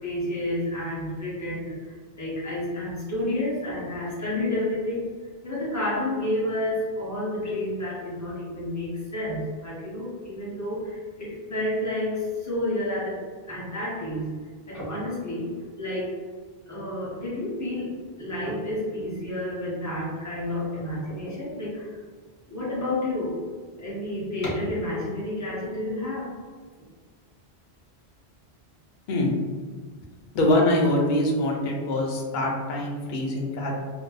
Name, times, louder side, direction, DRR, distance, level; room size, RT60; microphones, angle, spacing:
voice 1, 0.0-5.1 5.4-14.3 14.7-16.2 16.7-22.0 22.5-23.4 23.8-26.4, left 1 dB, 20° left, -7 dB, 0.6 m, -30 dB
voice 2, 30.3-33.7, left 1 dB, 60° left, -1 dB, 0.6 m, -24 dB
2.6 x 2.0 x 2.3 m, 1.5 s
omnidirectional pair, 1.1 m